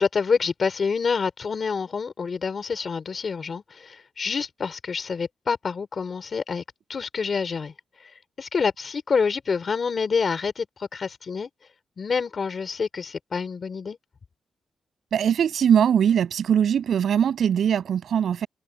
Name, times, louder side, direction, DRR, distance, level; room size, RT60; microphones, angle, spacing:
voice 1, 0.0-6.6 6.9-7.7 8.4-11.5 12.0-14.0, left 5 dB, 40° left, 3.7 m, -27 dB
voice 2, 15.1-18.5, right 8 dB, 70° right, 8.0 m, -21 dB
wide cardioid pair, 140°, 0 cm